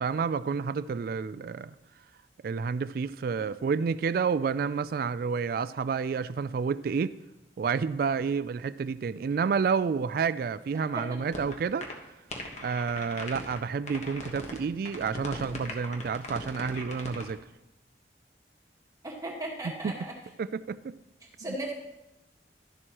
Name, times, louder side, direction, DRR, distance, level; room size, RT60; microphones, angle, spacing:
voice 1, 0.0-1.7 2.4-7.1 7.6-11.9 12.6-17.4 19.6-19.9 20.4-20.9, right 5 dB, 55° right, 15 dB, 0.3 m, -29 dB
voice 2, 10.7-11.2 19.0-20.1 21.4-21.7, right 1 dB, 20° right, -2 dB, 1.5 m, -37 dB
sound 1, 11.3-11.5 11.8-11.9 12.3-13.6 13.9-14.6 14.8-17.3, left 2 dB, 40° left, 1.3 m, -39 dB
12.5 x 11.0 x 3.0 m, 0.95 s
head